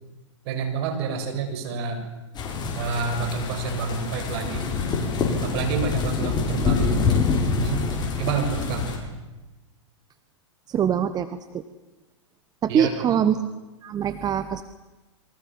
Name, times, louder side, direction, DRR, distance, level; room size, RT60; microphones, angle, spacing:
voice 1, 0.5-2.0 2.8-4.6 5.4-7.2 7.6-7.9 8.2-8.9 12.7-13.1, right 5 dB, 55° right, 6 dB, 7.2 m, -28 dB
sound 1, 2.3-9.0, left 4 dB, 25° left, 7.4 m, -26 dB
voice 2, 10.7-11.3 11.5-11.6 12.6-13.4 13.8-14.6, right 8 dB, 25° right, 11 dB, 1.4 m, -23 dB
27.5 x 24.0 x 7.9 m, 1.1 s
hypercardioid pair, 115°, 16 cm